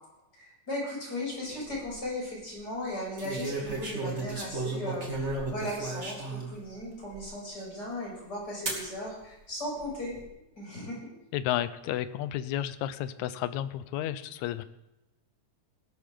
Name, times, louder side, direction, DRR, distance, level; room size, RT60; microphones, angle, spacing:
voice 1, 0.3-10.1 10.6-11.1, left 1 dB, 30° left, -4 dB, 7.5 m, -37 dB
sound 1, 1.5-1.9 3.2-6.5 7.1-7.2 8.7-8.9 9.8-10.2, right 2 dB, 25° right, 2.6 m, -34 dB
voice 2, 11.3-14.6, left 12 dB, 75° left, 13 dB, 1.9 m, -32 dB
19.0 x 12.0 x 3.8 m, 0.90 s
omnidirectional pair, 3.6 m